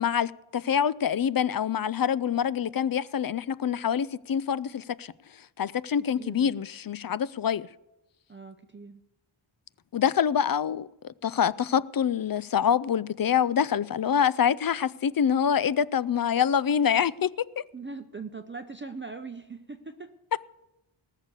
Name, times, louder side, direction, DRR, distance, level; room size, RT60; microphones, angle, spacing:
voice 1, 0.0-5.1 5.6-7.7 9.9-17.6, left 8 dB, 45° left, 0.4 m, -26 dB
voice 2, 6.2-6.6 8.3-9.0 17.7-20.1, right 4 dB, 25° right, 0.7 m, -41 dB
19.0 x 6.7 x 6.8 m
wide cardioid pair, 70°, 49 cm